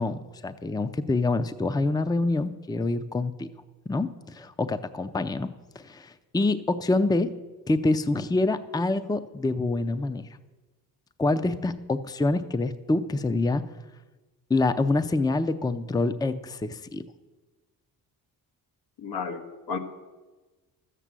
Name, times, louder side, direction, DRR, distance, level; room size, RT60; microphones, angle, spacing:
voice 1, 0.0-3.5 3.9-5.5 5.8-7.3 7.7-10.3 11.2-13.6 14.5-17.0, left 2 dB, 10° left, 11 dB, 0.5 m, -26 dB
voice 2, 19.0-19.8, left 5 dB, 80° left, 5 dB, 1.6 m, -33 dB
13.0 x 8.3 x 7.5 m, 1.2 s
cardioid pair, 105°, 39 cm